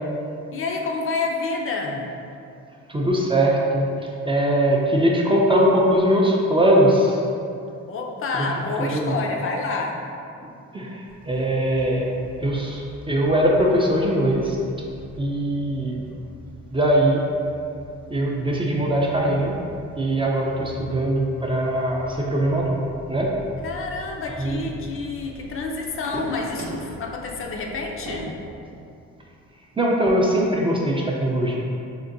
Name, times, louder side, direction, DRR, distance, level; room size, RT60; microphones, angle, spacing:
voice 1, 0.5-2.2 7.9-10.0 23.6-28.4, left 3 dB, 45° left, 1 dB, 0.4 m, -28 dB
voice 2, 2.9-7.2 8.3-8.5 8.8-9.2 10.7-12.1 12.4-14.6 15.2-16.1 16.7-17.2 18.1-19.5 20.0-22.8 23.1-23.3 24.4-24.7 29.8-31.6, right 1 dB, 20° right, -2 dB, 0.4 m, -21 dB
sound 1, 11.1-28.5, right 1 dB, 60° right, 0.6 m, -42 dB
3.7 x 2.5 x 2.5 m, 2.5 s
cardioid pair, 90°, 30 cm